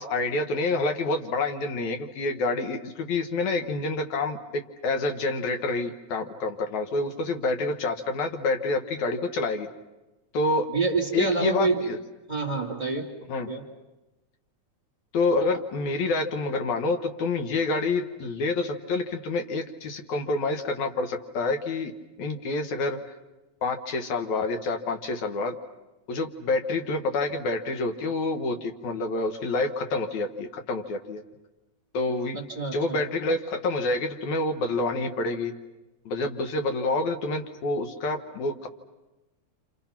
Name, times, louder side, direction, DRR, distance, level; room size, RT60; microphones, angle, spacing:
voice 1, 0.0-9.7 10.3-10.7 11.1-12.0 13.3-13.5 15.1-21.9 22.2-23.0 23.6-25.5 26.1-31.2 31.9-32.4 32.7-35.5 36.1-38.7, left 3 dB, 75° left, 6 dB, 2.8 m, -28 dB
voice 2, 10.7-11.8 12.3-13.1 13.5-13.6 32.3-33.0, right 3 dB, 15° right, -1 dB, 2.9 m, -27 dB
29.0 x 28.0 x 5.9 m, 1.0 s
omnidirectional pair, 3.4 m